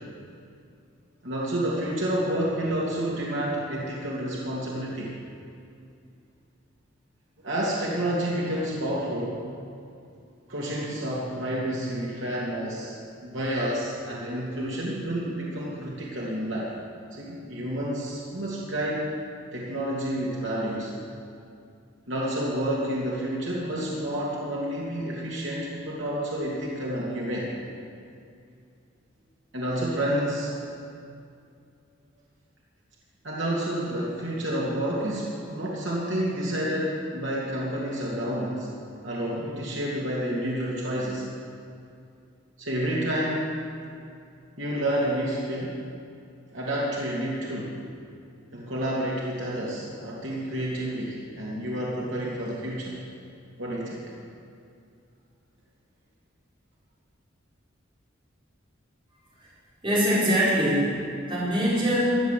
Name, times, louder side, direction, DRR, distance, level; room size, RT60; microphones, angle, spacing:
voice 1, 1.2-5.1 7.4-9.4 10.5-16.7 17.1-19.1 19.5-20.9 22.1-27.5 29.5-30.5 33.2-38.7 39.0-41.2 42.6-43.6 44.6-45.8 46.5-47.8 48.5-53.0 53.6-54.0, right 1 dB, 75° right, -5 dB, 2.6 m, -29 dB
voice 2, 59.8-62.2, equal, 25° right, -8 dB, 4.7 m, -23 dB
15.5 x 8.9 x 7.6 m, 2.4 s
head